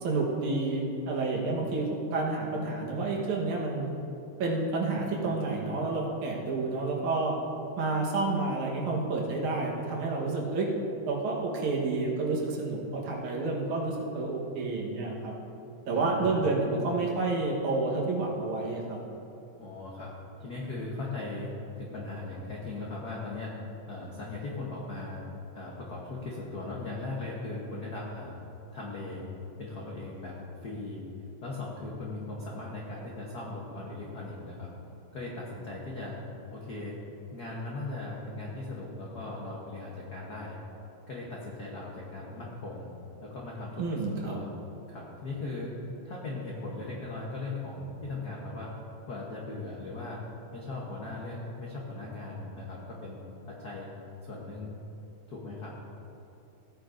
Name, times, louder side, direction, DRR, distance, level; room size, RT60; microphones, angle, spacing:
voice 1, 0.0-3.9 4.4-7.4 7.8-10.7 11.1-15.3 15.9-19.0 43.8-44.4, right 3 dB, 75° right, -2 dB, 2.6 m, -29 dB
voice 2, 15.9-16.4 19.6-20.1 20.4-21.5 21.8-23.5 23.9-25.2 25.5-28.4 28.7-29.2 29.6-30.3 30.6-31.0 31.4-34.7 35.1-36.2 36.5-37.0 37.3-40.6 41.1-42.9 43.2-44.5 44.9-45.7 46.0-48.7 49.0-50.2 50.5-53.2 53.5-53.9 54.2-54.7 55.3-55.7, left 2 dB, 65° left, -4 dB, 0.9 m, -38 dB
16.0 x 9.2 x 2.6 m, 2.9 s
omnidirectional pair, 3.5 m